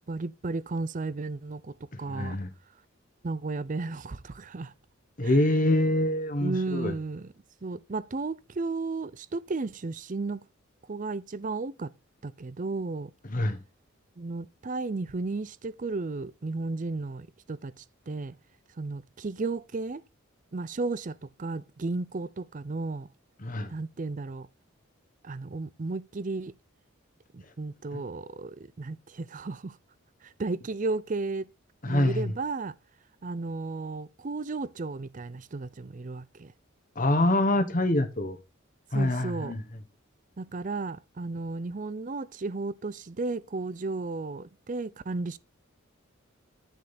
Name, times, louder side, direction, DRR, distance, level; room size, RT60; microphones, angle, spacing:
voice 1, 0.1-2.4 3.2-4.7 5.2-5.4 6.4-7.3 7.6-10.4 10.9-11.9 12.2-13.1 14.2-18.3 18.8-20.0 20.5-23.1 23.7-24.5 25.2-26.5 27.3-29.8 30.2-31.5 31.9-32.7 33.2-36.5 38.9-39.5 40.4-45.4, right 3 dB, 40° right, 0.5 m, -34 dB
voice 2, 1.9-2.5 5.2-6.9 13.3-13.6 23.4-23.7 31.8-32.3 37.0-38.4 38.9-39.6, left 1 dB, 40° left, 1.2 m, -25 dB
10.0 x 6.5 x 4.2 m
head